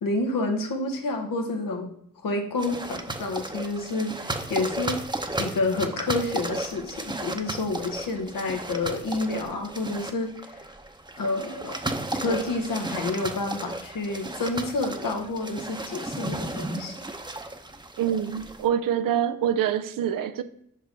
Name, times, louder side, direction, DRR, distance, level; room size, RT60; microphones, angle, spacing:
voice 1, 0.0-1.9 2.2-5.0 5.4-10.6 11.2-11.8 12.1-17.0, left 2 dB, 85° left, 1.0 m, -29 dB
sound 1, 2.6-18.7, right 2 dB, 15° right, 0.7 m, -34 dB
voice 2, 18.0-20.4, right 9 dB, 90° right, 0.5 m, -25 dB
5.2 x 4.7 x 4.6 m
cardioid pair, 45°, 33 cm